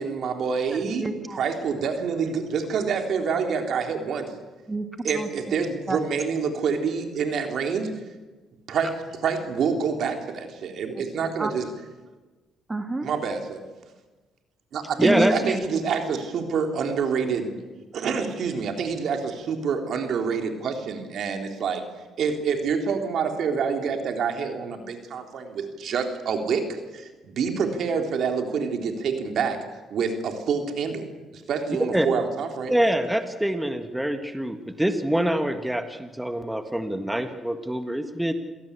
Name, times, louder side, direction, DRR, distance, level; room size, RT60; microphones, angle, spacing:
voice 1, 0.0-1.0 1.4-4.3 5.0-7.9 8.7-11.7 13.0-13.6 14.7-17.5 17.9-21.8 22.2-29.6 29.9-31.1 31.3-32.7, right 6 dB, 65° right, 5 dB, 3.7 m, -27 dB
voice 2, 0.7-1.4 4.7-5.3 5.9-6.0 11.4-11.5 12.7-13.1 15.0-15.6, right 2 dB, 20° right, 6 dB, 2.0 m, -28 dB
voice 3, 15.0-15.6 31.9-32.1 32.7-38.3, right 1 dB, 5° right, 7 dB, 1.8 m, -25 dB
27.5 x 17.5 x 8.5 m, 1.2 s
cardioid pair, 90°, 0 cm